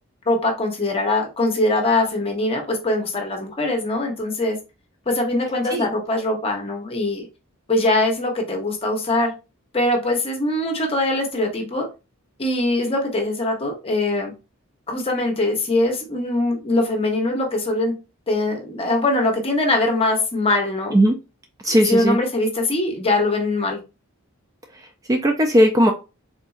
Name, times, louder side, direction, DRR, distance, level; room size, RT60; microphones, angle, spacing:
voice 1, 0.3-4.6 5.1-7.3 7.7-9.3 9.7-11.9 12.4-14.3 14.9-17.9 18.3-20.9 21.7-23.8, left 2 dB, 30° left, 0.8 m, -22 dB
voice 2, 21.6-22.2 25.1-25.9, equal, 15° right, 0.3 m, -17 dB
3.7 x 2.5 x 2.4 m
head